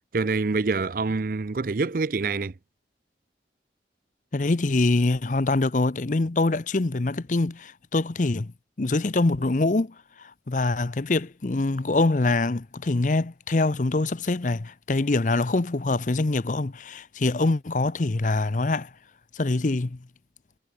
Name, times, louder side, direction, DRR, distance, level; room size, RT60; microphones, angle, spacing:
voice 1, 0.1-2.5, right 3 dB, 50° right, 0.5 m, -26 dB
voice 2, 4.3-8.5 8.8-18.9 19.3-20.0, left 2 dB, 45° left, 0.7 m, -24 dB
head